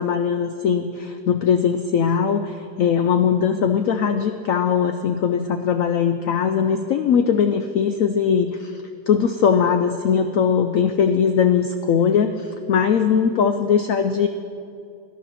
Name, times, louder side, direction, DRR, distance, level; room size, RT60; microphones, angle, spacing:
voice 1, 0.0-14.3, left 7 dB, 80° left, 8 dB, 0.7 m, -20 dB
17.5 x 11.5 x 4.2 m, 2.4 s
omnidirectional pair, 1.9 m